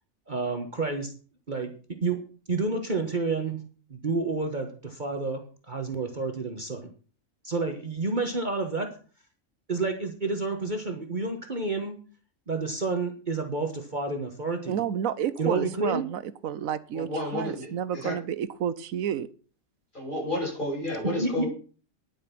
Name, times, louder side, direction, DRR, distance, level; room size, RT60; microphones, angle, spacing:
voice 1, 0.3-1.1 1.5-1.7 2.0-2.2 2.5-3.6 3.9-6.9 7.4-8.9 9.7-11.9 12.5-14.8 15.4-16.0 21.2-21.5, right 3 dB, 35° right, 4 dB, 1.4 m, -29 dB
voice 2, 14.7-19.3, right 9 dB, 85° right, 15 dB, 1.2 m, -30 dB
voice 3, 16.9-17.7 17.9-18.1 19.9-21.5, left 1 dB, 35° left, -3 dB, 6.5 m, -31 dB
10.5 x 8.7 x 5.9 m, 0.39 s
omnidirectional pair, 1.4 m